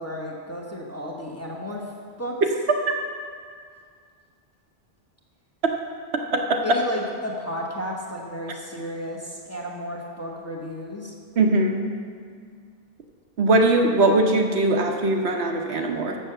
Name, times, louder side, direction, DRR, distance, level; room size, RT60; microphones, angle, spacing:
voice 1, 0.0-1.8 2.2-2.4 6.6-11.1, equal, 15° left, -3 dB, 0.9 m, -33 dB
voice 2, 6.3-6.8 11.4-11.9 13.4-16.2, right 2 dB, 75° right, 3 dB, 1.1 m, -20 dB
7.0 x 6.7 x 6.6 m, 2.1 s
omnidirectional pair, 1.1 m